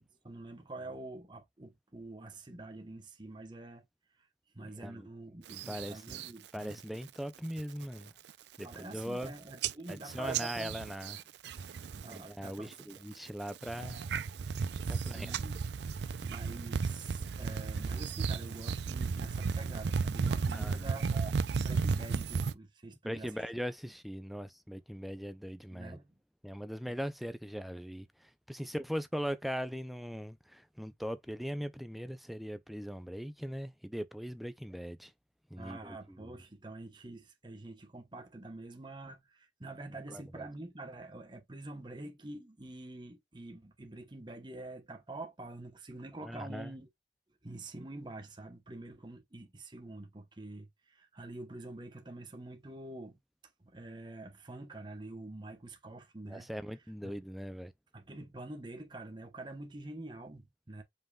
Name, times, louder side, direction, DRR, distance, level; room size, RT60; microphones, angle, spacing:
voice 1, 0.2-3.8 4.5-6.8 8.6-10.8 11.9-13.2 14.7-15.6 16.2-23.4 25.7-26.1 35.6-46.9 47.4-53.2 53.6-56.5 57.0-57.1 57.9-60.8, right 2 dB, 25° right, 1.0 m, -46 dB
voice 2, 4.8-5.1 5.5-6.2 6.5-8.1 8.6-9.3 9.9-11.2 12.1-14.0 14.9-15.5 20.5-20.9 23.0-26.0 26.4-35.1 35.5-36.4 40.1-40.4 46.2-46.7 56.2-57.7, equal, ahead, 0.4 m, -40 dB
sound 1, 5.5-6.3 6.7-7.1 7.5-7.8 8.3-8.4 8.6-9.3 9.6-12.2 12.4-13.0 13.5-22.5, right 5 dB, 70° right, 0.4 m, -34 dB
5.4 x 3.7 x 2.3 m
head